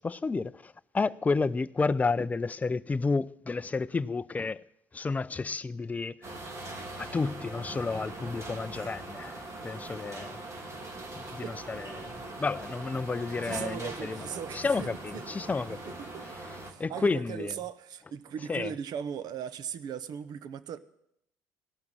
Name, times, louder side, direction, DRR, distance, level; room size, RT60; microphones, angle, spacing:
voice 1, 0.0-4.6 4.9-6.2 7.0-10.4 11.2-12.1 12.4-14.2 14.5-15.9 16.8-17.5 18.5-18.7, left 4 dB, 20° left, 0.4 m, -31 dB
sound 1, 6.2-16.7, right 2 dB, 40° right, 2.2 m, -41 dB
voice 2, 11.4-11.8 13.4-15.3 15.7-16.3 16.6-20.8, right 8 dB, 60° right, 0.8 m, -39 dB
16.5 x 5.9 x 8.9 m
supercardioid pair, 80°, 8 cm